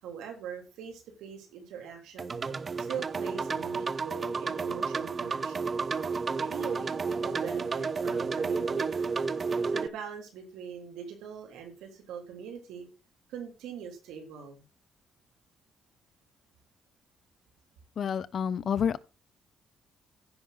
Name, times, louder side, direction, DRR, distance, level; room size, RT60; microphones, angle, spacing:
voice 1, 0.0-2.3 2.8-5.7 6.4-8.9 9.7-12.9 13.3-14.6, right 7 dB, 90° right, 3.2 m, -42 dB
sound 1, 2.2-9.9, right 4 dB, 40° right, 0.6 m, -31 dB
voice 2, 18.0-19.0, left 7 dB, 55° left, 0.7 m, -29 dB
15.0 x 5.7 x 4.0 m
cardioid pair, 90°, 0 cm